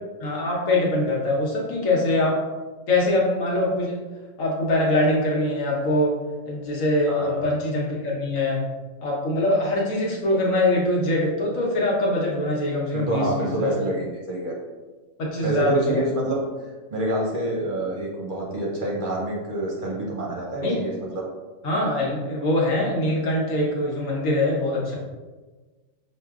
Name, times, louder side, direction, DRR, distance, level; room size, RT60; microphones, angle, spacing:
voice 1, 0.2-2.4 2.9-4.0 4.4-6.2 6.5-8.6 9.0-13.8 15.2-16.0 20.6-20.8 21.6-25.0, left 1 dB, 80° left, -3 dB, 1.4 m, -23 dB
voice 2, 7.1-7.4 12.9-14.5 15.4-21.2, right 1 dB, 50° right, -3 dB, 0.7 m, -27 dB
5.8 x 2.6 x 2.4 m, 1.3 s
omnidirectional pair, 1.4 m